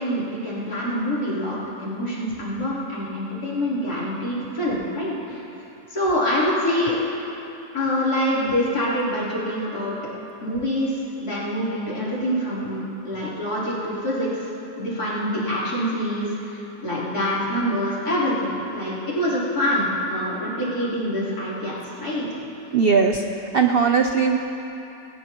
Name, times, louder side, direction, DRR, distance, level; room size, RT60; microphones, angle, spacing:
voice 1, 0.0-5.5 5.9-6.9 7.7-10.0 10.4-22.3, equal, 60° left, -9 dB, 4.4 m, -25 dB
voice 2, 22.7-23.2 23.5-24.4, right 5 dB, 80° right, 4 dB, 0.5 m, -18 dB
20.5 x 18.5 x 3.1 m, 3.0 s
omnidirectional pair, 1.9 m